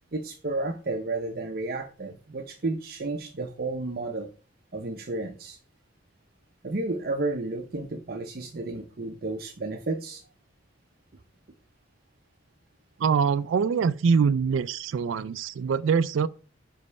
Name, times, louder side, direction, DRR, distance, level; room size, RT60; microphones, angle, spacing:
voice 1, 0.1-4.3 4.7-5.6 6.6-10.2, right 2 dB, 50° right, 0.7 m, -32 dB
voice 2, 13.0-16.3, right 6 dB, 85° right, 0.3 m, -24 dB
5.4 x 5.2 x 5.3 m
head